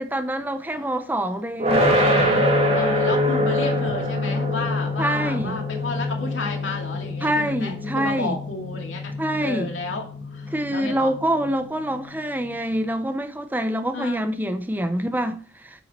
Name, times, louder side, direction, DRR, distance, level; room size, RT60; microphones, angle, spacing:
voice 1, 0.0-1.9 5.0-5.6 7.2-8.4 9.2-9.7 10.5-15.8, right 1 dB, 10° right, 0.5 m, -26 dB
sound 1, 1.6-12.6, left 1 dB, 30° right, 1.8 m, -25 dB
voice 2, 2.7-9.1 9.4-10.1 10.3-11.1 13.9-14.2, left 3 dB, 85° left, 2.3 m, -32 dB
9.0 x 6.2 x 4.1 m
head